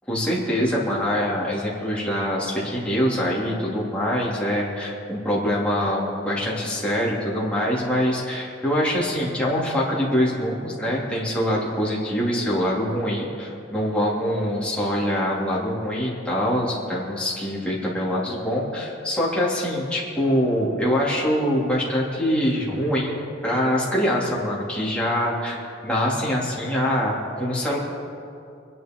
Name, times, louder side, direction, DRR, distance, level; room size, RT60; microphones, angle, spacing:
voice 1, 0.1-27.8, equal, 5° left, -6 dB, 3.2 m, -24 dB
24.5 x 10.5 x 4.7 m, 2.5 s
head